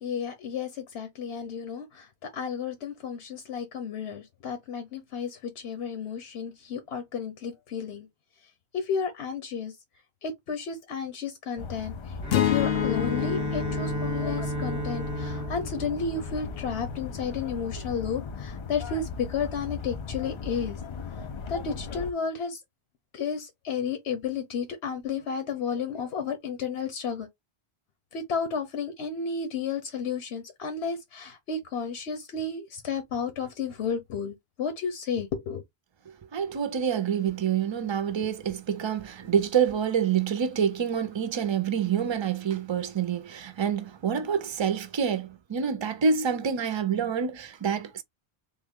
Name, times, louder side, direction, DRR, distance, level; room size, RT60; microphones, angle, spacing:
voice 1, 0.0-8.1 8.7-9.7 10.2-11.9 12.3-20.8 21.5-22.6 23.1-27.3 28.1-35.6, left 6 dB, 90° left, 1.1 m, -32 dB
sound 1, 11.6-22.1, left 5 dB, 50° left, 0.3 m, -37 dB
Bowed string instrument, 12.2-17.0, right 2 dB, 20° right, 0.8 m, -34 dB
sound 2, 12.3-16.6, left 13 dB, 70° left, 0.8 m, -30 dB
voice 2, 36.3-48.0, right 7 dB, 40° right, 0.4 m, -27 dB
3.6 x 2.2 x 3.6 m
omnidirectional pair, 1.1 m